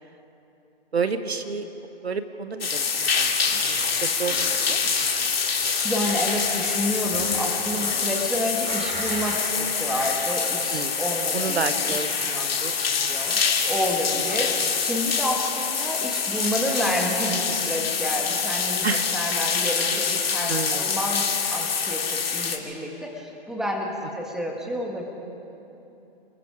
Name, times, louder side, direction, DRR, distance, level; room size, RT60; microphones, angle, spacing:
voice 1, 0.9-1.7 1.9-5.3 10.7-10.9 11.3-12.7 13.0-13.1 18.8-19.1 20.5-20.9, right 4 dB, 85° right, 10 dB, 1.4 m, -30 dB
sound 1, 2.6-22.6, left 6 dB, 70° left, 2.5 m, -25 dB
sound 2, 3.4-3.9 4.3-4.6 4.9-6.7 7.1-8.2 8.7-9.5 10.0-10.1, right 2 dB, 20° right, 3.7 m, -37 dB
voice 2, 5.8-12.5 13.1-18.8 19.1-25.0, equal, ahead, 0 dB, 2.0 m, -29 dB
29.0 x 21.5 x 5.0 m, 3.0 s
hypercardioid pair, 135°, 31 cm